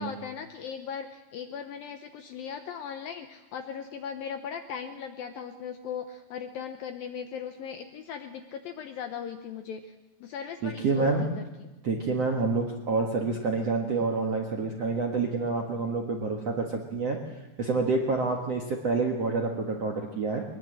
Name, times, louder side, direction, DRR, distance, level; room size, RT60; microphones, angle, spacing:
voice 1, 0.0-9.9 10.2-11.5, left 7 dB, 75° left, 6 dB, 2.2 m, -38 dB
voice 2, 10.6-11.3 11.8-17.2 17.6-20.4, right 3 dB, 60° right, 1 dB, 1.7 m, -28 dB
22.5 x 20.5 x 7.7 m, 1.1 s
omnidirectional pair, 5.2 m